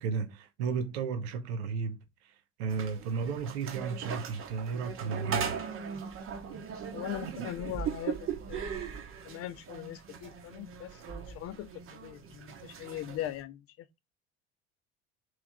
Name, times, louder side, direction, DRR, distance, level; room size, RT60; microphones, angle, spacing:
voice 1, 0.0-5.6 7.4-7.5, right 5 dB, 65° right, 0.8 m, -34 dB
sound 1, 2.7-13.4, right 7 dB, 40° right, 0.9 m, -39 dB
voice 2, 6.9-8.7 9.2-14.0, left 13 dB, 45° left, 0.6 m, -40 dB
3.4 x 3.1 x 3.5 m
figure-of-eight pair, 65°, 35 cm